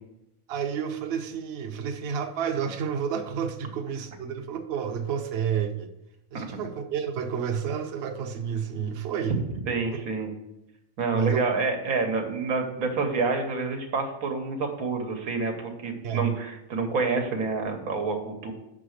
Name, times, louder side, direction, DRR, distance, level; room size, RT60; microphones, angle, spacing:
voice 1, 0.5-5.9 6.3-9.4 11.1-11.5 16.0-16.3, right 7 dB, 55° right, 5 dB, 0.8 m, -30 dB
voice 2, 9.7-10.3 11.0-18.5, right 4 dB, 90° right, 3 dB, 1.5 m, -28 dB
5.6 x 4.9 x 6.4 m, 0.88 s
omnidirectional pair, 1.5 m